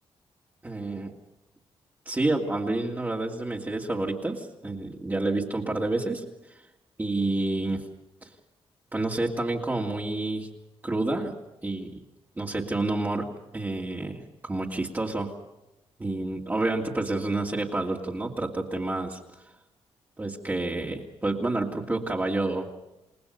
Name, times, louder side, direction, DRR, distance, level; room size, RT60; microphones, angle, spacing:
voice 1, 0.6-1.1 2.1-6.2 7.0-7.8 8.2-8.3 8.9-10.5 10.8-11.3 11.6-12.0 12.4-13.3 13.5-15.3 16.0-19.2 20.2-22.7, right 2 dB, 20° right, -2 dB, 2.6 m, -29 dB
29.5 x 19.0 x 6.8 m, 0.95 s
cardioid pair, 125°, 10 cm